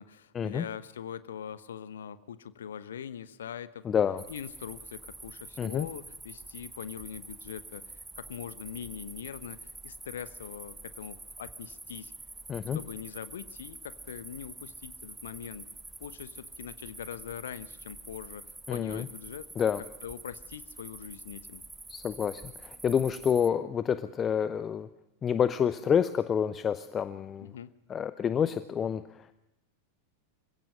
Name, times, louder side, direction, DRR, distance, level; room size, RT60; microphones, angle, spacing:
voice 1, 0.0-3.9 4.3-12.1 12.7-15.7 16.0-19.5 20.0-21.6 27.4-27.7, left 8 dB, 65° left, 15 dB, 1.1 m, -42 dB
voice 2, 3.8-4.2 5.6-5.9 12.5-12.8 18.7-19.1 19.6-19.8 21.9-24.9 25.2-27.5 27.9-29.3, left 8 dB, 25° left, 13 dB, 0.8 m, -28 dB
sound 1, 4.2-23.5, right 3 dB, 10° right, 1.0 m, -47 dB
26.5 x 16.5 x 6.3 m, 0.93 s
figure-of-eight pair, 90°, 0 cm